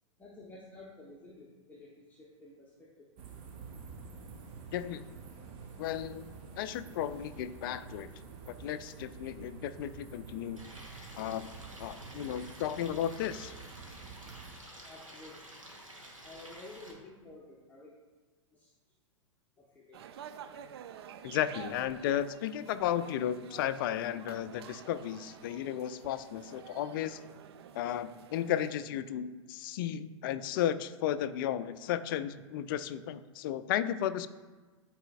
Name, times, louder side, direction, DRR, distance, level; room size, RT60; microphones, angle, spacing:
voice 1, 0.2-3.1 14.9-15.4 16.2-17.9 18.5-18.7 19.6-20.1, left 2 dB, 10° left, -5 dB, 0.8 m, -52 dB
sound 1, 3.2-14.5, right 5 dB, 35° right, 0.9 m, -49 dB
voice 2, 4.7-5.2 5.8-8.1 8.5-10.6 11.2-11.5 11.8-13.5 21.2-27.2 27.7-34.3, left 10 dB, 45° left, 13 dB, 0.4 m, -34 dB
Stream, 10.6-16.9, right 1 dB, 85° right, 1.3 m, -50 dB
sound 2, 19.9-28.7, right 8 dB, 55° right, 0.4 m, -50 dB
11.5 x 4.2 x 2.4 m, 1.3 s
figure-of-eight pair, 100°, 16 cm